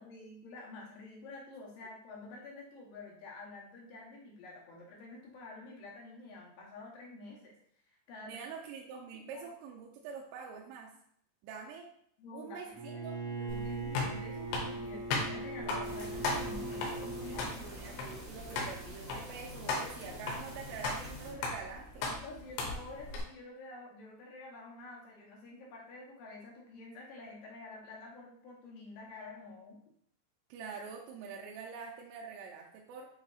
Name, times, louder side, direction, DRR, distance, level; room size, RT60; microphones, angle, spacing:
voice 1, 0.0-7.5 7.8-8.4 9.1-9.4 12.2-17.6 22.2-29.8, left 2 dB, 75° left, -3 dB, 2.2 m, -49 dB
voice 2, 8.3-10.9 11.4-11.9 12.3-13.2 17.5-22.1 30.5-33.1, right 5 dB, 85° right, -1 dB, 2.7 m, -45 dB
Bowed string instrument, 12.7-17.5, right 3 dB, 70° right, 1.4 m, -40 dB
Stepping on wood, 13.5-23.2, left 3 dB, 90° left, 3.1 m, -38 dB
sound 1, 15.8-21.3, equal, 45° right, 1.2 m, -47 dB
8.0 x 2.8 x 2.4 m, 0.66 s
omnidirectional pair, 4.8 m